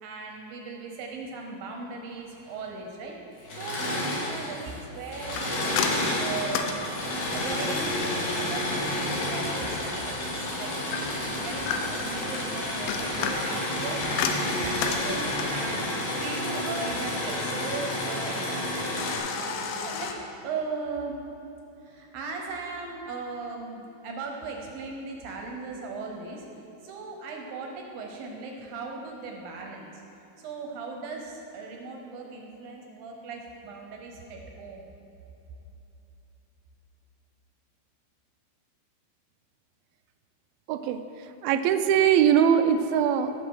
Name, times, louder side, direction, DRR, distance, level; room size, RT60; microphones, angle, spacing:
voice 1, 0.0-3.2 3.5-6.8 7.3-21.2 21.8-26.5 26.8-30.0 30.4-34.9, right 4 dB, 75° right, 1 dB, 2.2 m, -38 dB
Engine / Mechanisms, 3.4-4.7 5.0-19.2, left 1 dB, 70° left, 4.5 m, -30 dB
sound 1, 5.3-7.6 10.9-12.2 12.7-15.7 19.0-20.1, left 6 dB, 90° left, 3.0 m, -32 dB
voice 2, 40.7-43.3, right 8 dB, 90° right, 7 dB, 2.1 m, -22 dB
16.5 x 6.4 x 4.7 m, 3.0 s
omnidirectional pair, 5.0 m